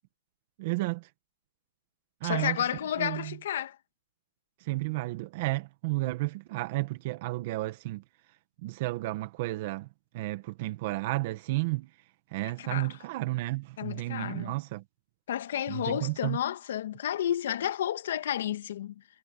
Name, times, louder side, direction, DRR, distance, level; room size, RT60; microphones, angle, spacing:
voice 1, 0.6-1.1 2.2-2.6 3.0-3.3 4.6-8.0 8.6-9.9 10.1-11.9 12.3-14.8 15.7-16.4, right 19 dB, 55° right, 1.6 m, -32 dB
voice 2, 2.2-3.8 12.6-13.0 13.8-14.6 15.3-19.0, left 10 dB, 85° left, 2.0 m, -31 dB
supercardioid pair, 155°, 0 cm